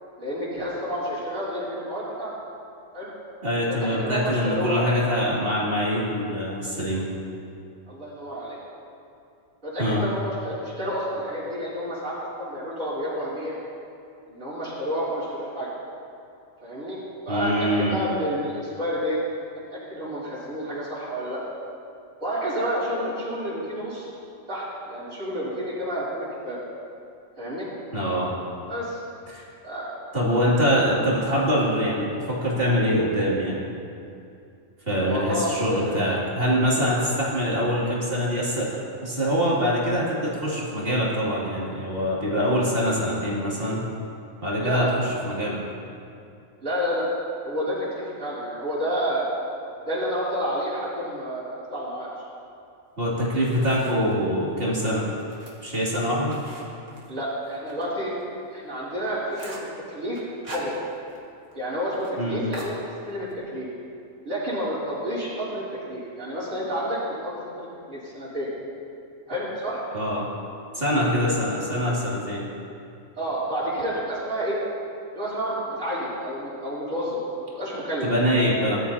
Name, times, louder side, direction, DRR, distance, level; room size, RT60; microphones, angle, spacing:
voice 1, 0.2-2.3 2.9-3.1 3.7-4.8 7.9-8.6 9.6-13.5 14.3-15.7 16.6-17.0 17.3-19.2 19.7-21.4 22.2-24.1 24.5-26.6 27.4-27.7 28.7-29.0 29.6-30.0 35.1-36.0 44.6-44.9 46.6-47.1 47.4-49.3 49.8-52.1 53.6-53.8 57.1-58.1 58.5-59.6 59.9-60.2 60.5-60.7 61.5-62.7 63.1-63.7 64.2-68.5 69.3-69.8 71.2-71.3 73.2-74.6 75.1-78.1, equal, 85° right, -13 dB, 3.8 m, -29 dB
voice 2, 3.4-7.1 9.8-10.0 17.3-18.0 27.9-28.3 29.3-29.4 30.1-33.6 34.9-38.7 39.0-43.8 44.4-45.6 53.0-55.1 55.6-56.3 62.2-62.4 69.9-70.3 70.7-72.4 78.0-78.8, equal, 45° right, -7 dB, 3.1 m, -24 dB
sound 1, 53.0-54.2 54.6-57.9 58.2-58.3 58.7-58.8 59.1-59.8 60.2-61.3 61.5-61.6 61.9-62.1 62.5-63.4, right 1 dB, 65° right, 2.2 m, -43 dB
20.5 x 12.0 x 2.9 m, 2.5 s
omnidirectional pair, 1.4 m